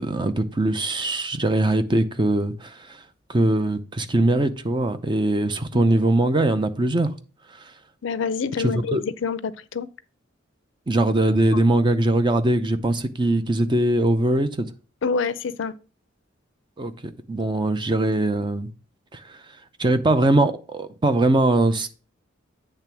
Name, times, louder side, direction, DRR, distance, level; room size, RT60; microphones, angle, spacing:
voice 1, 0.0-3.0 3.3-7.1 7.6-7.7 8.6-9.0 10.9-14.7 16.8-16.9 17.3-18.7 19.1-19.4 19.8-21.9, right 1 dB, 25° right, 0.6 m, -21 dB
voice 2, 8.0-9.9 11.5-11.6 15.0-15.7, left 5 dB, 65° left, 0.4 m, -27 dB
8.7 x 3.3 x 6.0 m
head